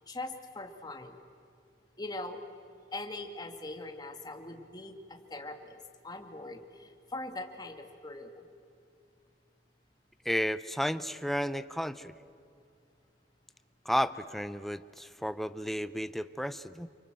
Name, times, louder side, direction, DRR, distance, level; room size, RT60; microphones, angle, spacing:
voice 1, 0.1-1.2 2.0-2.4 2.9-8.4, left 2 dB, 25° left, 5 dB, 2.2 m, -42 dB
voice 2, 10.2-12.1 13.8-16.9, equal, ahead, 13 dB, 0.6 m, -32 dB
30.0 x 24.0 x 7.6 m, 2.6 s
head